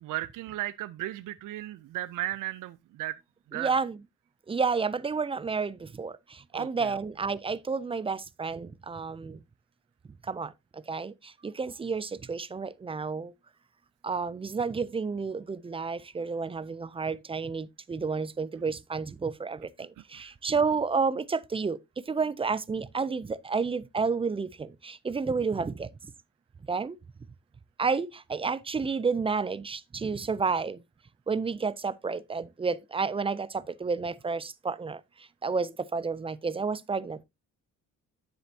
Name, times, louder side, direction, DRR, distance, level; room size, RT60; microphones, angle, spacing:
voice 1, 0.0-3.2 3.5-3.8 6.5-7.0 20.1-20.3, right 15 dB, 90° right, 0.5 m, -35 dB
voice 2, 3.5-4.0 4.5-9.4 10.2-13.3 14.0-25.9 26.7-27.0 27.8-30.8 31.3-37.2, right 5 dB, 20° right, 0.4 m, -31 dB
9.5 x 7.7 x 2.7 m
cardioid pair, 145°, 31 cm